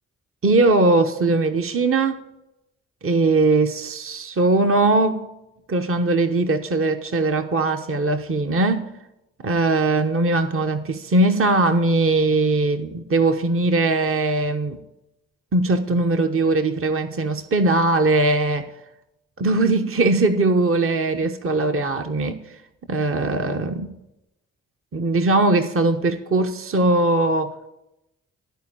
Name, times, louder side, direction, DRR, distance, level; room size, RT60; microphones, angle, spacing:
voice 1, 0.4-2.2 3.0-5.3 5.7-8.9 9.4-14.8 15.5-18.7 19.4-22.4 22.9-23.9 24.9-27.5, right 2 dB, 45° right, 0.9 m, -20 dB
13.5 x 4.5 x 8.7 m
supercardioid pair, 45°, 31 cm